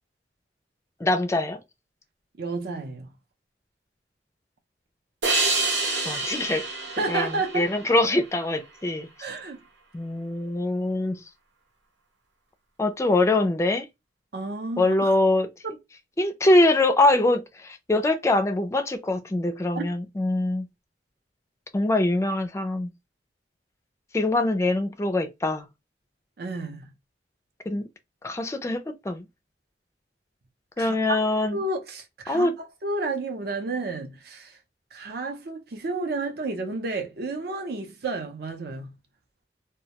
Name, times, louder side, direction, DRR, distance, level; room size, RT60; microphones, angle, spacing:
voice 1, 1.0-1.6 5.9-6.6 7.1-9.1 9.9-11.2 12.8-13.9 14.8-15.5 16.2-20.7 21.7-22.9 24.1-25.7 27.7-27.9 28.2-29.2 30.8-31.6 32.3-32.5, left 2 dB, 15° left, 0.3 m, -23 dB
voice 2, 2.4-3.1 7.0-7.7 9.2-9.6 14.3-15.1 19.7-19.8 26.4-26.9 30.8-31.2 31.5-34.6 34.9-38.9, right 3 dB, 60° right, 0.6 m, -31 dB
sound 1, 5.2-8.5, right 3 dB, 90° right, 0.9 m, -28 dB
2.2 x 2.1 x 2.8 m
head